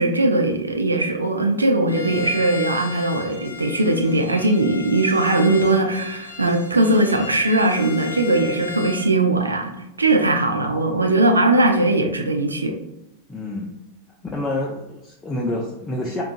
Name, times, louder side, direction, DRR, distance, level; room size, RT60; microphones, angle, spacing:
voice 1, 0.0-12.7, right 2 dB, 80° right, 3 dB, 0.4 m, -20 dB
Bowed string instrument, 1.9-9.1, left 4 dB, 85° left, 0.5 m, -36 dB
voice 2, 13.3-13.8 14.3-16.2, left 1 dB, 10° left, -2 dB, 0.4 m, -28 dB
3.7 x 2.3 x 2.5 m, 0.90 s
figure-of-eight pair, 90°, 0 cm